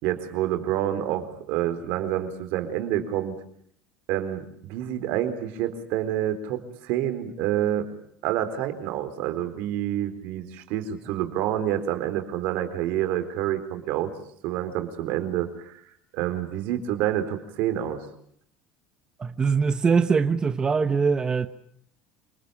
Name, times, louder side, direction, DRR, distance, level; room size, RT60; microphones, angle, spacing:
voice 1, 0.0-3.4 4.1-7.9 8.2-14.1 14.4-15.7 16.1-18.1, right 11 dB, 70° right, 4.2 m, -28 dB
voice 2, 19.2-21.5, right 5 dB, 25° right, 1.1 m, -22 dB
27.5 x 20.0 x 8.6 m
supercardioid pair, 100°, 3 cm